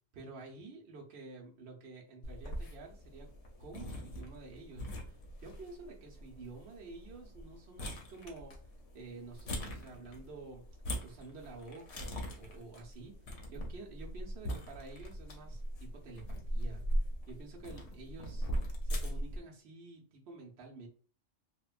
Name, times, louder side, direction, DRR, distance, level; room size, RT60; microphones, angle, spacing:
voice 1, 0.1-3.3 3.6-5.2 5.4-8.5 8.9-10.6 11.0-13.1 13.5-18.5 18.8-20.9, right 3 dB, 60° right, -1 dB, 0.9 m, -50 dB
sound 1, 2.2-19.4, equal, 80° left, 1.1 m, -40 dB
2.9 x 2.1 x 2.4 m, 0.40 s
omnidirectional pair, 1.3 m